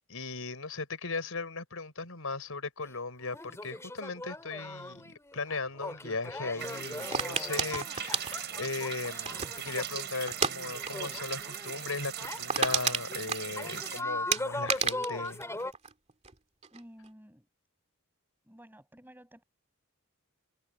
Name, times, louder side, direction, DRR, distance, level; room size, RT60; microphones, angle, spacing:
voice 1, 0.0-15.4, left 3 dB, 70° left, 5.6 m, -37 dB
sound 1, 2.8-2.9 3.2-12.4 12.9-13.2 13.6-15.7, left 2 dB, 15° left, 3.4 m, -40 dB
sound 2, 6.6-14.0, right 10 dB, 55° right, 4.8 m, -39 dB
sound 3, 7.1-9.7 10.3-10.6 10.8-11.1 11.4-11.5 11.9-12.0 12.2-13.9 14.3-16.3 16.6-17.1, right 6 dB, 30° right, 2.3 m, -31 dB
voice 2, 16.7-17.5 18.4-19.4, equal, 10° right, 7.9 m, -53 dB
head